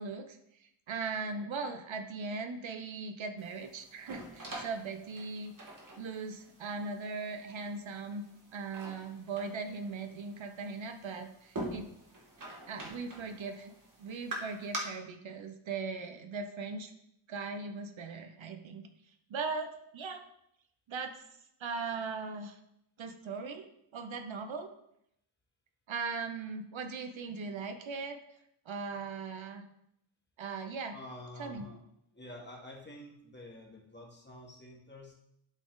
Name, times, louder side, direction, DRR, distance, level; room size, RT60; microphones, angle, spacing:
voice 1, 0.0-8.2 8.5-11.9 12.7-13.7 14.0-16.9 17.3-18.9 19.3-20.3 20.9-21.1 21.6-22.6 23.0-24.7 25.9-28.2 28.7-29.7 30.4-30.9 31.4-31.7, right 4 dB, 65° right, 6 dB, 0.8 m, -39 dB
sound 1, 3.4-14.8, right 1 dB, 40° right, 1.7 m, -46 dB
voice 2, 30.9-31.8 32.1-35.1, left 1 dB, 20° left, -2 dB, 1.7 m, -48 dB
11.5 x 4.1 x 3.9 m, 0.77 s
wide cardioid pair, 140°, 49 cm